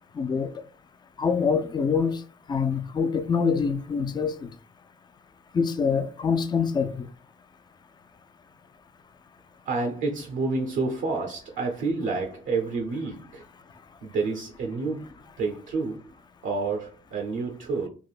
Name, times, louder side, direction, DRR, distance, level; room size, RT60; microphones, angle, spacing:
voice 1, 0.1-0.6 1.2-2.2 2.5-4.5 5.5-7.1, left 5 dB, 20° left, 0.3 m, -25 dB
voice 2, 9.7-13.4 14.0-15.1 15.4-16.1 16.4-17.9, right 3 dB, 75° right, 0.7 m, -29 dB
3.4 x 2.5 x 2.3 m
cardioid pair, 90°, 20 cm